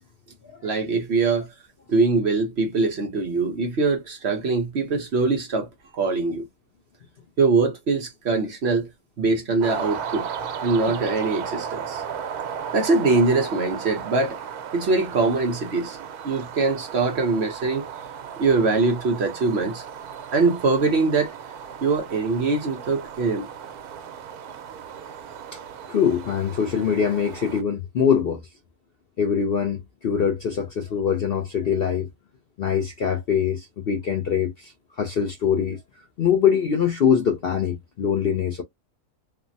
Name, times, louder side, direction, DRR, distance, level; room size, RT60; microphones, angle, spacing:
voice 1, 0.6-1.5 1.9-6.5 7.4-8.9 9.2-10.3 10.6-12.0 12.7-14.4 14.7-16.0 16.2-17.9 18.4-19.8 20.3-21.3 21.8-23.5, right 3 dB, 50° right, 0.9 m, -22 dB
sound 1, 9.6-27.6, right 7 dB, 80° right, 1.1 m, -35 dB
voice 2, 25.9-28.4 29.2-32.1 32.6-35.8 36.2-38.6, left 7 dB, 55° left, 0.6 m, -23 dB
3.3 x 2.0 x 2.6 m
omnidirectional pair, 1.6 m